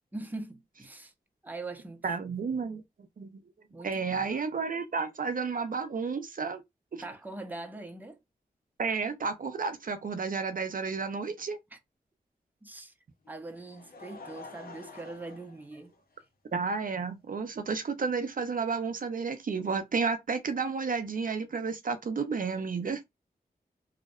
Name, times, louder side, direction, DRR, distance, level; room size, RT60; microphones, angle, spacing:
voice 1, 0.1-1.1 1.4-2.6 3.7-4.3 7.0-8.2 11.7-11.8 12.6-12.9 13.3-16.0, right 2 dB, 10° right, 0.6 m, -42 dB
voice 2, 2.0-2.8 3.2-3.4 3.8-6.6 6.9-7.0 8.8-11.6 16.5-23.0, right 5 dB, 60° right, 0.5 m, -31 dB
Laughter, 13.2-16.5 17.3-17.4 18.9-19.0, left 4 dB, 70° left, 0.7 m, -49 dB
2.7 x 2.1 x 2.3 m
cardioid pair, 40°, 16 cm